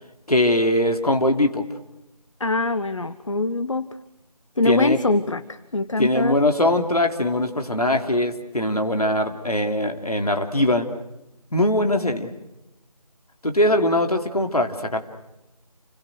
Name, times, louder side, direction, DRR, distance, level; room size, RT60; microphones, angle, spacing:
voice 1, 0.3-1.6 4.6-5.0 6.0-10.9 11.5-12.3 13.4-15.0, left 1 dB, 70° left, 6 dB, 3.1 m, -21 dB
voice 2, 2.4-3.9 4.6-5.4 5.7-6.4, left 2 dB, 55° left, 13 dB, 1.1 m, -23 dB
28.5 x 27.0 x 6.4 m, 0.91 s
figure-of-eight pair, 165°, 20 cm